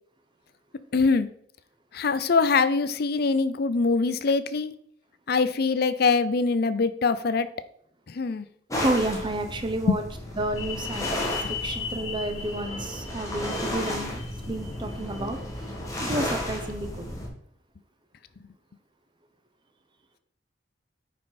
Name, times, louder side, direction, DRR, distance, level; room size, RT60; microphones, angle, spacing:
voice 1, 0.9-1.3 1.9-4.7 5.3-7.5 8.1-8.4 9.9-10.0, left 4 dB, 55° left, 14 dB, 0.5 m, -23 dB
sound 1, 8.7-17.3, left 1 dB, 20° left, 2.0 m, -33 dB
voice 2, 8.7-10.0 10.4-11.1 11.5-14.2 14.5-15.4 16.0-17.1, right 1 dB, 25° right, 6 dB, 1.0 m, -30 dB
sound 2, 10.6-15.9 16.2-16.3, left 6 dB, 75° left, 2.0 m, -38 dB
9.6 x 5.5 x 4.1 m, 0.66 s
head